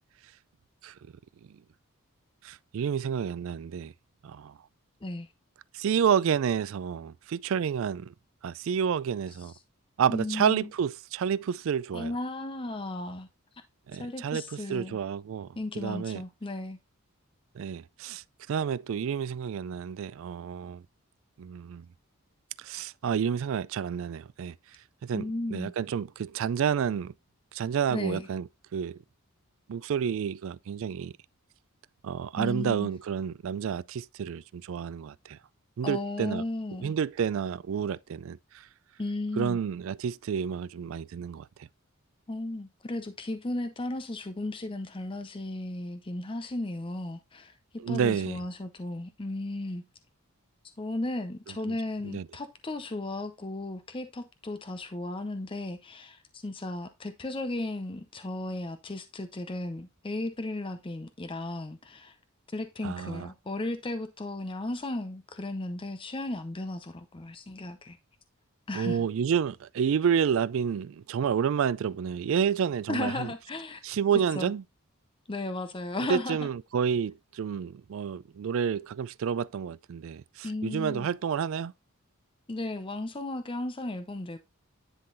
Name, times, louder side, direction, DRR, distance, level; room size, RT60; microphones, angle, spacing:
voice 1, 2.4-3.9 4.2-4.5 5.7-8.1 8.4-9.5 10.0-12.1 13.9-14.4 14.7-15.5 15.8-16.2 17.6-20.8 21.4-21.9 22.6-24.5 25.0-27.1 27.5-29.0 29.7-31.1 32.0-35.4 35.8-36.4 36.8-38.7 39.4-41.5 47.8-48.4 51.7-51.8 52.0-52.2 62.8-63.3 68.7-73.3 73.8-74.6 76.1-81.7, right 7 dB, 65° right, 0.3 m, -29 dB
voice 2, 10.1-10.7 11.9-13.3 13.5-13.6 14.0-15.0 15.6-16.8 25.1-25.7 27.9-28.3 32.4-32.9 35.8-36.9 39.0-39.6 42.3-47.6 47.9-49.9 50.8-62.2 62.5-68.0 68.7-69.1 72.9-73.8 74.3-74.5 75.3-76.5 80.4-81.1 82.5-84.4, left 2 dB, 25° left, 0.6 m, -35 dB
10.0 x 3.8 x 4.0 m
head